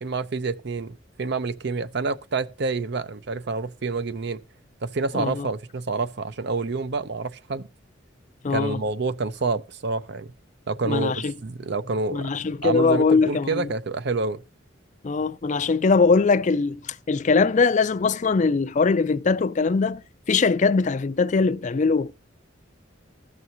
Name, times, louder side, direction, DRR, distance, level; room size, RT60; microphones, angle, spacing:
voice 1, 0.0-4.4 4.8-7.7 8.5-10.3 10.7-12.3 12.6-14.4, right 3 dB, 60° right, 0.6 m, -28 dB
voice 2, 5.1-5.5 8.4-8.8 10.8-11.3 12.1-13.7 15.0-20.0 20.3-22.1, left 4 dB, 40° left, 0.4 m, -21 dB
15.0 x 6.2 x 2.6 m
head